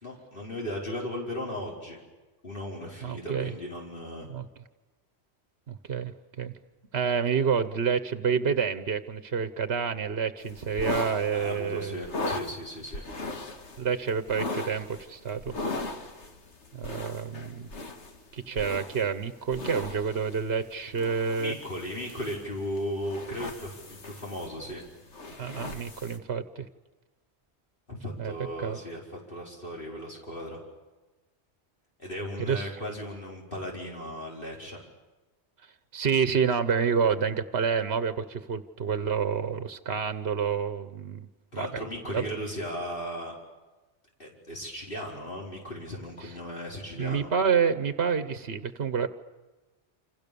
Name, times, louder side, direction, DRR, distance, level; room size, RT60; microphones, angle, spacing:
voice 1, 0.0-2.0 2.4-4.3 11.3-13.0 21.4-24.8 27.9-30.6 32.0-34.8 41.5-43.4 44.2-47.3, equal, 50° left, -2 dB, 5.2 m, -36 dB
voice 2, 3.0-3.5 4.2-4.5 5.7-6.1 6.4-6.5 6.9-12.0 13.8-15.5 16.7-17.7 18.3-21.5 25.3-26.7 28.2-28.3 28.6-28.8 32.4-32.7 35.9-41.3 41.5-41.8 42.1-42.3 46.2-46.3 46.9-49.1, right 6 dB, 65° right, 11 dB, 1.4 m, -28 dB
sound 1, 10.4-26.2, left 2 dB, 80° left, 2.2 m, -39 dB
29.0 x 27.0 x 7.0 m, 1.2 s
omnidirectional pair, 1.1 m